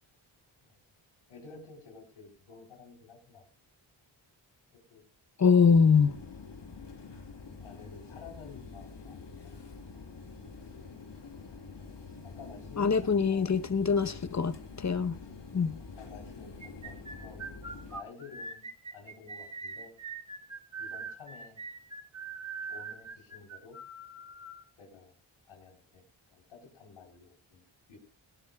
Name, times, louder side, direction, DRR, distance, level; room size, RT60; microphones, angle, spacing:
voice 1, 1.3-3.5 4.7-5.0 7.6-9.3 12.2-13.6 15.5-19.9 20.8-21.6 22.7-23.8 24.8-25.2 25.5-26.0 26.3-28.0, left 5 dB, 85° left, 3.9 m, -52 dB
voice 2, 5.4-6.1 12.8-14.5 14.8-15.2 15.5-15.8, left 5 dB, 35° left, 0.9 m, -23 dB
sound 1, 5.6-18.0, left 4 dB, 60° left, 2.2 m, -46 dB
sound 2, 16.6-24.6, right 4 dB, 35° right, 2.3 m, -42 dB
18.0 x 17.5 x 2.3 m
cardioid pair, 45°, 48 cm